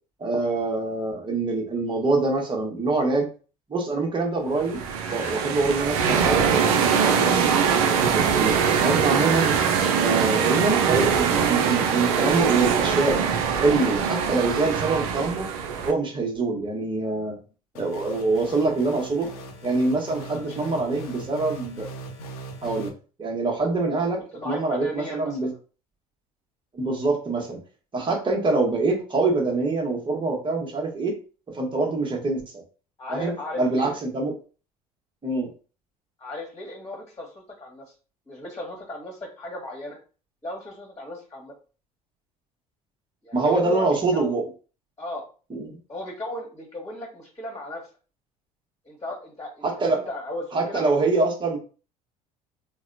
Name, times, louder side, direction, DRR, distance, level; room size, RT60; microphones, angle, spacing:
voice 1, 0.2-3.3 3.7-4.8 5.1-6.5 7.6-9.5 10.0-13.2 13.6-15.5 15.8-17.4 17.7-19.3 19.6-21.9 22.6-22.9 23.2-25.5 26.7-27.6 27.9-31.2 31.5-32.4 33.1-34.3 35.2-35.5 43.3-44.4 45.5-45.7 49.6-50.0 50.5-51.6, right 3 dB, 25° right, 1 dB, 1.2 m, -25 dB
sound 1, 4.6-15.9, right 6 dB, 65° right, 0.5 m, -22 dB
sound 2, 17.7-22.9, right 2 dB, 75° left, 0.8 m, -40 dB
voice 2, 20.3-20.8 24.1-25.5 33.0-33.9 36.2-37.9 38.3-40.0 40.4-41.5 43.2-44.3 45.0-45.3 45.9-47.8 48.8-50.8, left 1 dB, 20° left, -1 dB, 1.5 m, -36 dB
4.0 x 2.3 x 2.6 m, 0.36 s
figure-of-eight pair, 60°, 19 cm